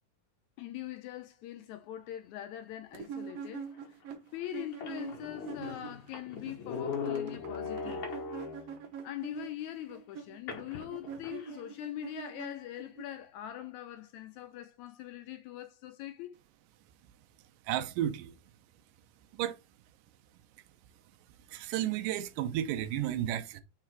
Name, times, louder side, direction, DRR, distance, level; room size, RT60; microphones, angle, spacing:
voice 1, 0.6-3.7 4.3-8.2 9.0-16.4, left 13 dB, 80° left, 1.8 m, -42 dB
sound 1, 2.9-6.1 6.3-13.0, right 7 dB, 65° right, 1.8 m, -44 dB
sound 2, 3.8-3.9 4.4-4.5 4.7-8.8 10.5-11.6, left 5 dB, 60° left, 1.4 m, -39 dB
voice 2, 17.7-18.4 19.3-19.6 21.5-23.6, right 12 dB, 90° right, 2.3 m, -32 dB
4.8 x 4.7 x 4.4 m
omnidirectional pair, 3.7 m